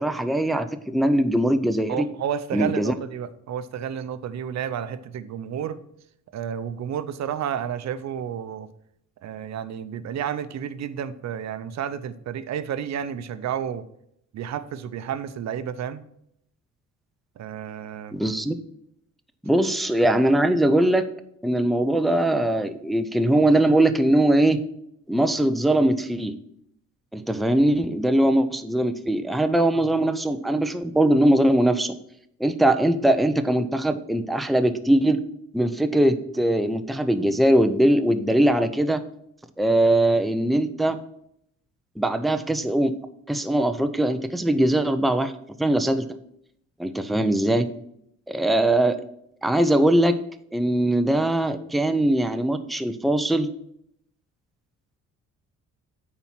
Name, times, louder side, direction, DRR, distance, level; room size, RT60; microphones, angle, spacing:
voice 1, 0.0-2.0 2.5-2.9 18.1-18.5 19.4-21.1 21.4-24.6 25.1-26.3 27.1-31.9 32.4-35.2 35.5-39.0 39.6-41.0 42.0-42.9 43.3-45.3 45.6-46.1 46.8-47.7 48.3-49.0 49.4-50.2 50.5-53.5, right 1 dB, ahead, 8 dB, 0.6 m, -21 dB
voice 2, 1.9-5.8 6.3-8.7 9.2-13.8 14.3-16.0 17.4-18.2, right 9 dB, 65° right, 12 dB, 0.7 m, -31 dB
8.8 x 4.3 x 5.8 m, 0.72 s
cardioid pair, 90°, 30 cm